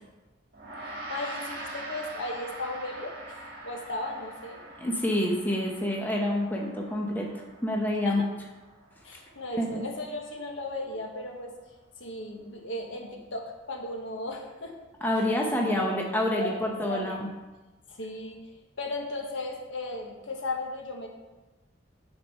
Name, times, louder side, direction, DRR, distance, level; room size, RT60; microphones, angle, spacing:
Gong, 0.5-10.2, right 1 dB, 45° right, 2.0 m, -43 dB
voice 1, 1.1-4.6 8.0-8.2 9.0-11.5 12.0-14.7 15.6-15.9 16.4-17.2 17.9-18.5 18.8-21.1, left 2 dB, 75° left, 1 dB, 1.3 m, -36 dB
voice 2, 4.8-7.3 7.6-8.2 9.6-9.8 15.0-17.3, left 1 dB, 10° left, -1 dB, 0.8 m, -27 dB
8.9 x 4.5 x 5.4 m, 1.2 s
head